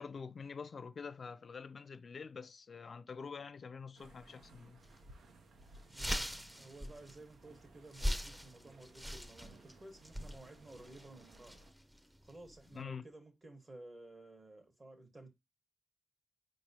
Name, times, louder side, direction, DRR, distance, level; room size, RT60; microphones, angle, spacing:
voice 1, 0.0-4.8 12.7-13.0, left 5 dB, 60° left, 0.4 m, -46 dB
sound 1, 3.9-11.7, right 2 dB, 85° right, 0.6 m, -61 dB
sound 2, 4.8-5.0 5.4-5.5 5.7-12.8, equal, 10° right, 0.6 m, -42 dB
voice 2, 5.9-11.6 11.9-15.3, right 2 dB, 45° right, 1.3 m, -55 dB
4.5 x 3.0 x 2.8 m
supercardioid pair, 50°, 0 cm